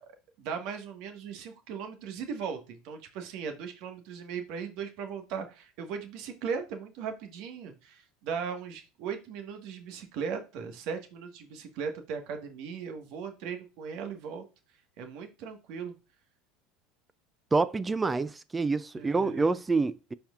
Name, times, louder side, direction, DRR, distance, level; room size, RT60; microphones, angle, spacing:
voice 1, 0.4-14.4 15.0-15.9 19.0-19.6, right 6 dB, 60° right, 1.4 m, -38 dB
voice 2, 17.5-20.1, right 3 dB, 15° right, 0.3 m, -27 dB
12.0 x 4.3 x 2.4 m
supercardioid pair, 135°, 0 cm